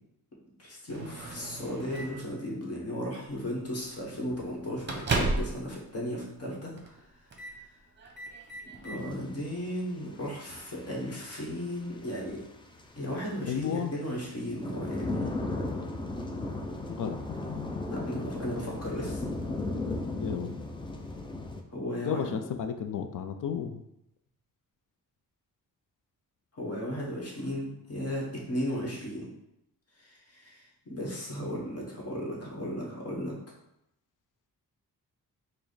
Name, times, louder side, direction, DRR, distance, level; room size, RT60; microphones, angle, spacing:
voice 1, 0.6-7.1 8.8-12.4 13.0-15.3 17.9-19.2 21.7-22.3 26.5-29.3 30.0-33.4, equal, 45° left, -3 dB, 1.3 m, -35 dB
Microwave oven, 0.9-2.3 3.2-3.4 3.8-3.9 4.3-5.7 6.0-6.1 6.8-7.0 7.3-7.6 8.0-9.0, right 2 dB, 30° right, 0.7 m, -34 dB
sound 1, 9.0-9.1 9.4-21.6, left 2 dB, 15° left, 0.4 m, -36 dB
voice 2, 13.5-13.9 16.9-17.2 20.1-20.5 22.0-23.8, left 7 dB, 65° left, 8 dB, 0.5 m, -32 dB
4.8 x 2.1 x 4.0 m, 0.82 s
wide cardioid pair, 120°, 34 cm